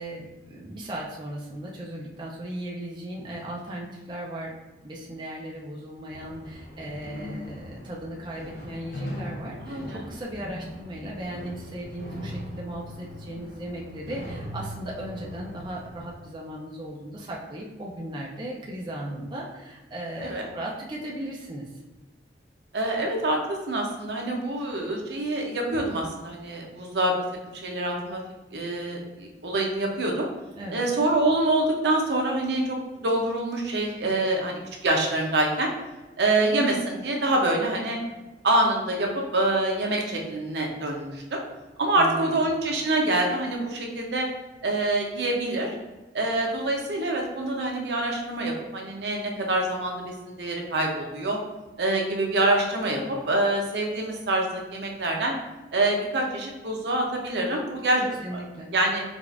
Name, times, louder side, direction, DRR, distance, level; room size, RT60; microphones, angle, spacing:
voice 1, 0.0-4.5 4.8-21.7 30.6-30.9 41.9-42.5 58.2-58.7, right 1 dB, 25° right, -3 dB, 0.4 m, -37 dB
sound 1, 6.1-16.1, equal, 60° left, 0.9 m, -39 dB
voice 2, 9.6-10.0 20.2-20.5 22.7-27.1 27.5-28.2 28.5-30.3 30.7-35.7 36.2-38.0 38.4-41.4 41.8-44.3 44.6-45.7 46.1-51.4 51.8-55.3 55.7-58.4 58.7-59.0, right 2 dB, 75° right, 0 dB, 0.7 m, -26 dB
4.9 x 2.4 x 2.4 m, 1.2 s
head